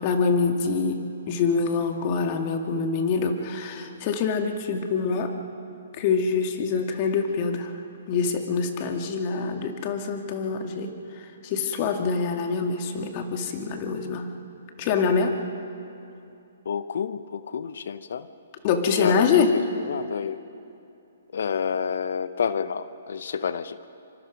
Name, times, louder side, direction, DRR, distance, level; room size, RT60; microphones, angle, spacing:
voice 1, 0.0-5.4 5.9-7.7 8.1-10.9 11.4-14.3 14.8-15.4 18.6-19.5, left 5 dB, 40° left, 5 dB, 2.2 m, -25 dB
voice 2, 16.6-18.3 18.9-20.5 21.3-23.8, left 6 dB, 65° left, 14 dB, 0.8 m, -29 dB
25.5 x 25.0 x 5.2 m, 2.7 s
hypercardioid pair, 135°, 0 cm